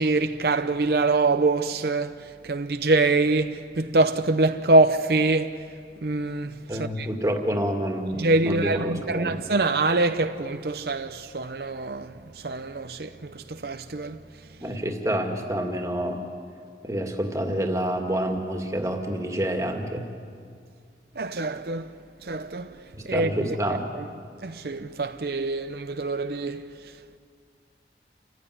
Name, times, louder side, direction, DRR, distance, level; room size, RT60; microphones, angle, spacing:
voice 1, 0.0-5.6 6.0-7.1 8.1-14.3 21.2-23.3 23.6-24.1 24.4-27.2, right 2 dB, 60° right, 0.7 m, -25 dB
voice 2, 6.7-9.3 14.6-16.2 16.8-20.1 22.9-23.9, equal, 20° right, 2.2 m, -28 dB
29.5 x 15.5 x 9.7 m
head